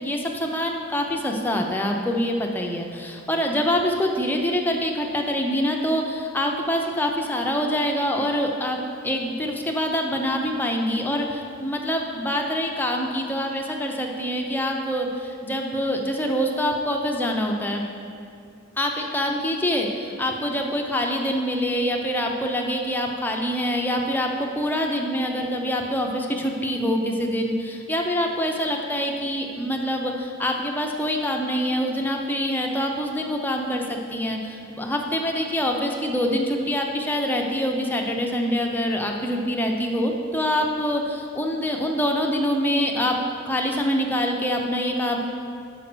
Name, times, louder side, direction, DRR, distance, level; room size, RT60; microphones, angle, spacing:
voice 1, 0.0-17.8 18.8-43.2 43.5-45.3, equal, 10° left, 1 dB, 0.6 m, -25 dB
6.3 x 5.1 x 6.1 m, 2.4 s
head